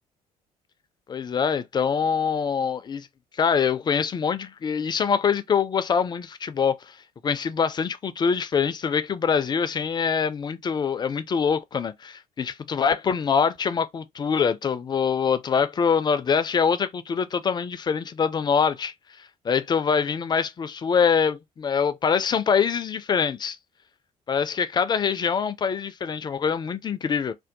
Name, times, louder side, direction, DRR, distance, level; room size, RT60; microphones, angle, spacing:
voice 1, 1.1-3.1 3.4-7.0 7.2-18.9 19.4-23.6 24.3-27.3, left 6 dB, 20° left, 0.3 m, -24 dB
2.6 x 2.1 x 2.6 m
figure-of-eight pair, 50°, 19 cm